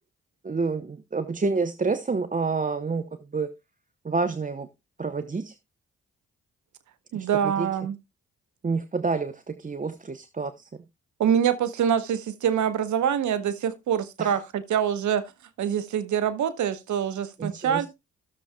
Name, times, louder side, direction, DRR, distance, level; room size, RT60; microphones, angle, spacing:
voice 1, 0.4-3.5 4.0-4.7 5.0-5.5 7.1-7.7 8.6-10.7 14.2-14.3 17.4-17.9, right 4 dB, 25° right, 0.8 m, -28 dB
voice 2, 7.1-8.0 11.2-15.3 15.6-17.9, right 8 dB, 65° right, 0.8 m, -25 dB
15.5 x 7.1 x 2.2 m
hypercardioid pair, 45°, 32 cm